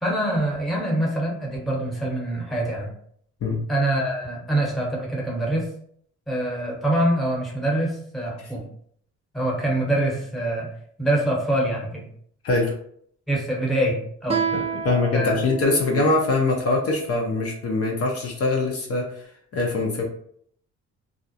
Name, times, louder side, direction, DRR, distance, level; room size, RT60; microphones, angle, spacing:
voice 1, 0.0-2.9 3.7-5.7 6.3-8.6 9.3-10.7 11.0-12.0 13.3-14.4 15.1-15.4, right 1 dB, ahead, -3 dB, 0.9 m, -24 dB
Guitar, 14.3-17.5, right 6 dB, 20° right, 0.4 m, -31 dB
voice 2, 14.5-20.0, left 3 dB, 50° left, 0 dB, 0.6 m, -23 dB
2.4 x 2.0 x 2.7 m, 0.63 s
cardioid pair, 90°, 30 cm